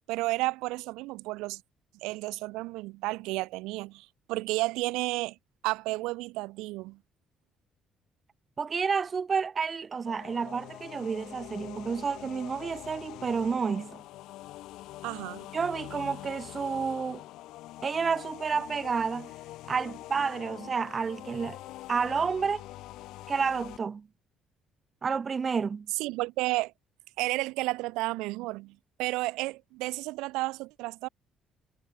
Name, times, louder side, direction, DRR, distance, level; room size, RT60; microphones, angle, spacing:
voice 1, 0.1-1.6 2.0-5.4 5.6-7.0 15.0-15.5 25.9-26.7 27.2-31.1, right 21 dB, 85° right, 1.6 m, -32 dB
voice 2, 8.6-14.0 15.5-17.2 17.8-19.3 19.7-21.6 21.9-22.6 23.3-24.0 25.0-25.9, right 5 dB, 40° right, 0.6 m, -30 dB
sound 1, 10.1-23.8, left 16 dB, 80° left, 1.5 m, -44 dB
supercardioid pair, 75°, 0 cm